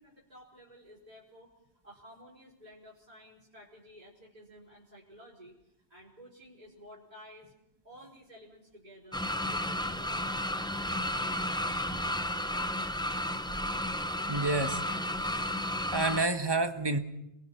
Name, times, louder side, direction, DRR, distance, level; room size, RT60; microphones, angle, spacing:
voice 1, 0.0-1.5 1.8-5.5 5.9-7.5 7.8-10.2 10.6-11.6, equal, 40° right, -7 dB, 4.9 m, -53 dB
sound 1, 9.1-16.3, left 1 dB, 5° left, 0.6 m, -33 dB
voice 2, 14.3-14.8 15.1-15.6 15.9-17.0, right 2 dB, 25° right, 7 dB, 1.3 m, -29 dB
29.5 x 22.5 x 4.5 m, 0.86 s
omnidirectional pair, 1.1 m